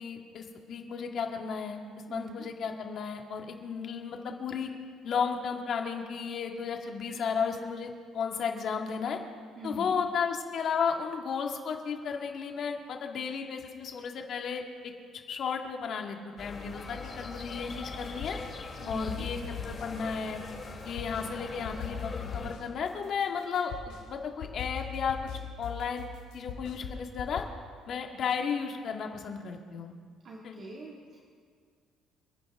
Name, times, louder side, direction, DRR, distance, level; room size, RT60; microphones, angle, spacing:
voice 1, 0.0-1.8 2.1-4.7 5.0-9.2 9.6-18.4 18.9-19.4 19.6-20.4 20.8-26.1 26.3-27.4 27.9-29.9 30.4-30.6, left 6 dB, 55° left, 3 dB, 1.8 m, -34 dB
voice 2, 2.1-2.5 9.6-10.0 18.8-19.3 30.2-31.2, right 1 dB, 50° right, -2 dB, 2.0 m, -42 dB
sound 1, 16.4-22.5, left 4 dB, 30° left, 2.3 m, -42 dB
sound 2, 17.0-18.5 18.9-21.3 21.6-27.4, left 7 dB, 80° left, 2.8 m, -41 dB
28.5 x 10.5 x 3.6 m, 2.1 s
cardioid pair, 110°, 0 cm